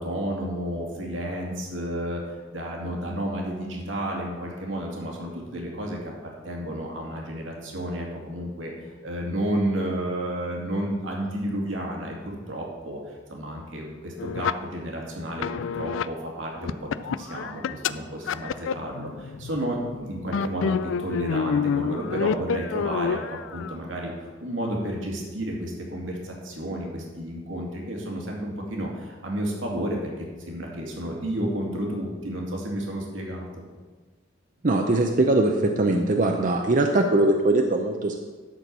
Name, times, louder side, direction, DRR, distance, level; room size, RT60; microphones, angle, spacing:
voice 1, 0.0-6.1 6.4-33.5, right 1 dB, 85° right, -1 dB, 2.2 m, -31 dB
sound 1, 14.2-14.5 15.4-16.1 16.6-17.9 18.3-19.9 20.2-23.8, left 6 dB, 85° left, 0.4 m, -28 dB
voice 2, 34.6-38.2, right 2 dB, 45° right, 3 dB, 0.6 m, -21 dB
12.0 x 4.5 x 6.9 m, 1.4 s
head